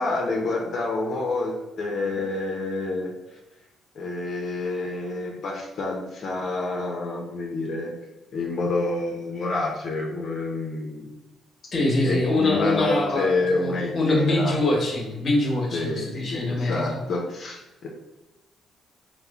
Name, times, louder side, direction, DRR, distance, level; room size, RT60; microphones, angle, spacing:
voice 1, 0.0-3.1 4.0-7.9 8.3-11.1 12.0-14.5 15.7-17.9, left 2 dB, 60° left, -2 dB, 0.6 m, -28 dB
voice 2, 11.7-17.0, left 2 dB, 45° left, -1 dB, 1.0 m, -24 dB
3.0 x 2.1 x 3.5 m, 1.0 s
cardioid pair, 90°, 0 cm